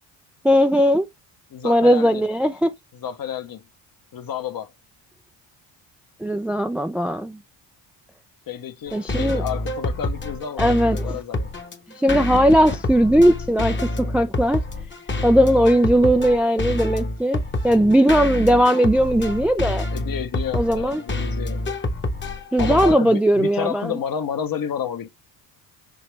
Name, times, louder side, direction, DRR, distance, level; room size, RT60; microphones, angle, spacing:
voice 1, 0.4-1.1 1.6-2.7 6.2-7.4 8.9-9.4 10.6-11.2 12.0-14.6 15.2-19.9 20.5-21.0 22.5-24.0, equal, 5° right, 0.3 m, -18 dB
voice 2, 1.5-2.2 2.9-3.6 4.1-4.7 8.5-11.5 19.9-21.6 22.6-25.1, left 8 dB, 45° left, 0.9 m, -30 dB
sound 1, 8.9-22.9, left 2 dB, 25° left, 1.0 m, -27 dB
5.2 x 2.8 x 3.2 m
supercardioid pair, 65°, 49 cm